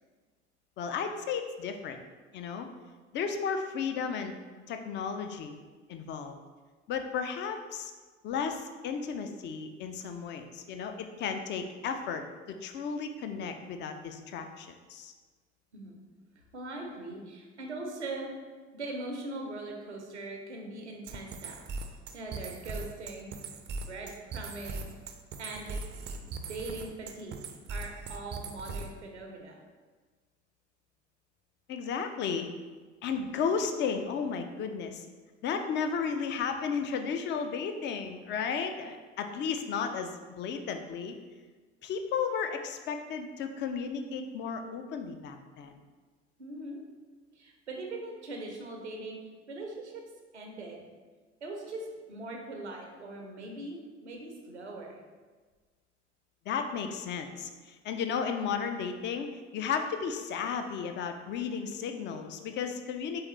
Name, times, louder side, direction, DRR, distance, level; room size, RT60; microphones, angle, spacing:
voice 1, 0.8-2.0 2.3-2.7 3.1-4.4 4.7-5.6 5.9-6.4 6.9-7.9 8.2-15.1 31.7-32.5 33.0-35.1 35.4-41.1 41.8-45.7 56.5-59.3 59.5-63.2, left 6 dB, 35° left, 7 dB, 0.5 m, -34 dB
voice 2, 16.5-18.3 18.7-21.6 22.1-23.3 23.8-24.8 25.4-25.8 26.2-27.4 27.7-29.6 46.4-46.8 47.3-49.2 49.5-50.0 50.3-50.8 51.4-55.0, right 2 dB, 80° right, 1 dB, 0.7 m, -41 dB
sound 1, 21.1-29.1, right 3 dB, 30° right, 0.5 m, -39 dB
4.7 x 3.5 x 3.1 m, 1.4 s
figure-of-eight pair, 60°, 34 cm